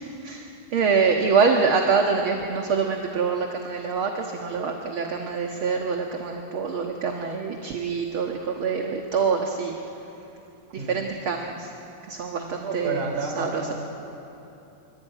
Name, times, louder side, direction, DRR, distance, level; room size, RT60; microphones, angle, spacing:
voice 1, 0.2-9.8 10.7-11.7 12.1-13.0 13.4-13.7, right 5 dB, 50° right, 2 dB, 1.9 m, -25 dB
voice 2, 12.5-13.8, right 3 dB, 75° right, 2 dB, 5.6 m, -30 dB
26.5 x 24.5 x 9.1 m, 2.9 s
omnidirectional pair, 3.6 m